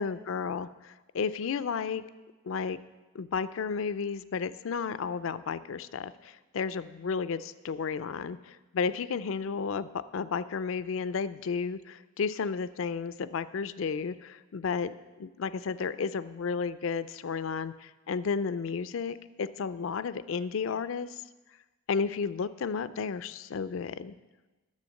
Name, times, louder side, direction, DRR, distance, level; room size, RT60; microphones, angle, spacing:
voice 1, 0.0-2.0 2.4-2.8 3.1-14.9 15.2-21.1 21.9-24.1, left 5 dB, 75° left, 15 dB, 0.4 m, -32 dB
10.5 x 6.9 x 6.4 m, 1.2 s
head